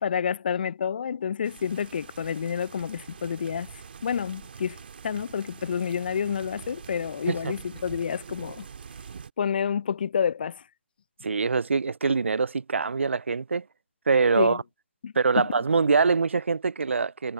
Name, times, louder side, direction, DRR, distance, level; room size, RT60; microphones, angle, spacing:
voice 1, 0.0-8.7 9.4-10.6 14.4-14.6 15.0-15.5, left 7 dB, 45° left, 0.6 m, -29 dB
sound 1, 1.4-9.3, right 6 dB, 50° right, 2.0 m, -45 dB
voice 2, 11.2-13.6 14.1-14.6 15.2-17.3, right 4 dB, 70° right, 0.4 m, -24 dB
figure-of-eight pair, 145°, 7 cm